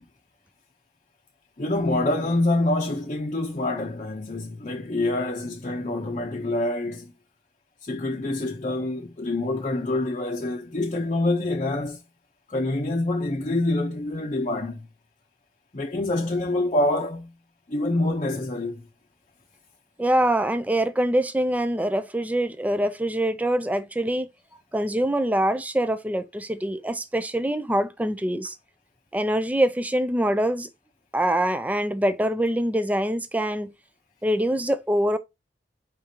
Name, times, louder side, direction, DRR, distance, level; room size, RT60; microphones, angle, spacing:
voice 1, 1.6-7.1 7.8-12.0 12.5-14.9 15.7-17.3 17.7-18.9, left 2 dB, 40° left, 0.7 m, -26 dB
voice 2, 20.0-24.3 24.7-28.5 29.1-30.7 31.1-33.7 34.2-35.2, right 1 dB, 10° right, 0.4 m, -24 dB
5.0 x 3.6 x 2.8 m
head